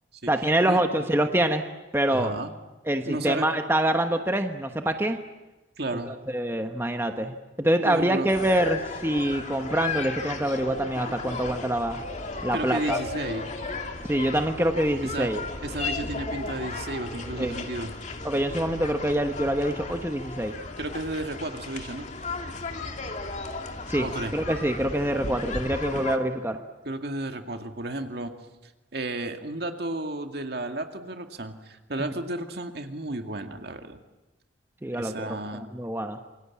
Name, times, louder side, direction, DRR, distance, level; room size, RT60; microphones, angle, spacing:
voice 1, 0.3-1.6 1.9-2.3 2.9-5.2 6.1-12.0 12.4-13.0 14.1-15.4 17.3-17.6 18.2-20.5 23.9-24.1 24.3-26.6 32.0-32.1 34.8-36.2, right 1 dB, 15° right, 5 dB, 1.2 m, -25 dB
voice 2, 2.1-2.5 3.0-3.5 5.8-6.1 7.8-8.3 12.5-13.5 15.0-15.3 15.6-17.9 20.8-22.1 24.0-24.3 25.9-26.0 26.8-28.3 28.9-34.0 34.9-35.6, right 2 dB, 60° right, 5 dB, 2.2 m, -33 dB
sound 1, 8.3-26.2, left 3 dB, 40° left, 2.3 m, -35 dB
27.0 x 23.5 x 8.6 m, 1.1 s
head